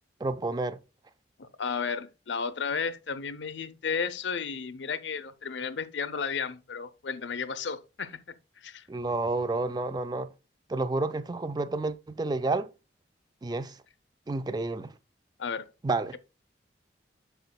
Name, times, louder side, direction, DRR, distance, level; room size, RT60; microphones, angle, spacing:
voice 1, 0.2-0.8 8.9-10.3 10.7-12.7 13.4-13.8 14.3-14.9 15.8-16.2, right 2 dB, 20° right, 0.4 m, -30 dB
voice 2, 1.4-8.2 8.6-8.8 15.4-15.7, left 5 dB, 75° left, 0.7 m, -33 dB
7.9 x 6.7 x 2.2 m
head